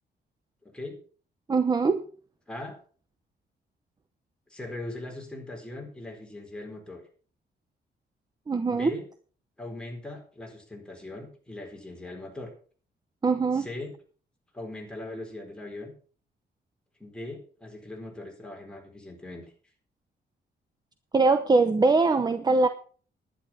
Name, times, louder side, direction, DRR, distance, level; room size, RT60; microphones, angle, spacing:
voice 1, 0.6-1.0 2.5-2.8 4.5-7.0 8.7-9.1 9.6-12.5 13.5-13.9 14.5-15.9 17.0-19.4, left 2 dB, 5° left, 0 dB, 4.3 m, -40 dB
voice 2, 1.5-2.0 8.5-8.9 13.2-13.7 21.1-22.7, right 3 dB, 20° right, 9 dB, 0.8 m, -22 dB
11.5 x 10.5 x 5.8 m, 0.42 s
wide cardioid pair, 150°, 18 cm